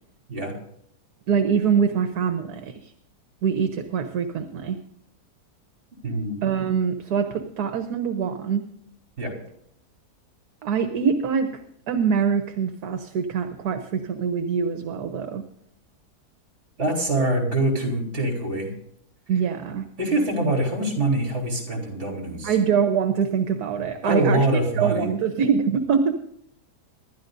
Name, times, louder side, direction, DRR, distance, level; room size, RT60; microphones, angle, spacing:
voice 1, 1.3-2.9 3.4-4.8 6.4-8.7 10.6-11.5 11.9-15.4 19.3-19.9 22.4-24.4 24.7-26.1, right 6 dB, 70° right, 7 dB, 1.5 m, -24 dB
voice 2, 6.0-6.4 9.2-9.3 16.8-18.7 20.0-22.6 24.0-25.1, right 2 dB, 40° right, 1 dB, 4.0 m, -24 dB
25.5 x 12.0 x 2.6 m, 0.71 s
omnidirectional pair, 1.8 m